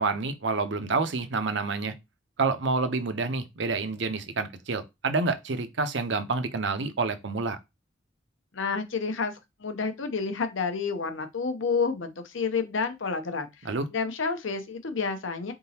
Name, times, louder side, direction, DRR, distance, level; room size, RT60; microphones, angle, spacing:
voice 1, 0.0-1.9 2.4-7.6 13.6-13.9, right 3 dB, 70° right, 0.7 m, -28 dB
voice 2, 8.5-15.5, left 4 dB, 85° left, 0.8 m, -30 dB
4.0 x 3.7 x 2.8 m
head